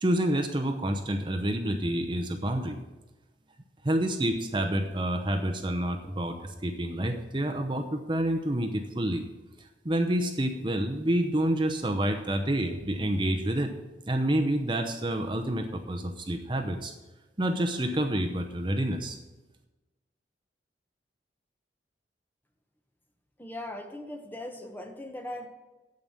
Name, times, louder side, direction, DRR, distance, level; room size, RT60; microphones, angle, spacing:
voice 1, 0.0-2.8 3.8-9.3 9.8-13.7 14.0-16.9 17.4-19.2, right 1 dB, 25° right, 4 dB, 0.8 m, -28 dB
voice 2, 23.4-25.5, left 1 dB, 10° left, 5 dB, 1.0 m, -39 dB
8.8 x 7.9 x 7.2 m, 1.1 s
head